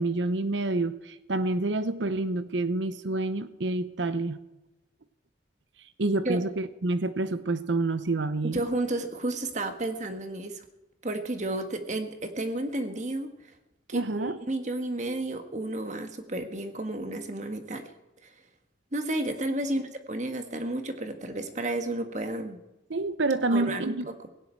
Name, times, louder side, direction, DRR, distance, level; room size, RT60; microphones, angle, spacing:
voice 1, 0.0-4.4 6.0-8.6 13.9-14.4 19.7-19.8 22.9-24.1, right 2 dB, 80° right, 13 dB, 0.8 m, -28 dB
voice 2, 8.4-10.6 11.0-13.3 13.9-17.9 18.2-18.3 18.9-19.8 20.1-22.6 23.5-24.0, right 2 dB, 40° right, 7 dB, 1.6 m, -32 dB
17.5 x 17.0 x 4.6 m, 0.96 s
head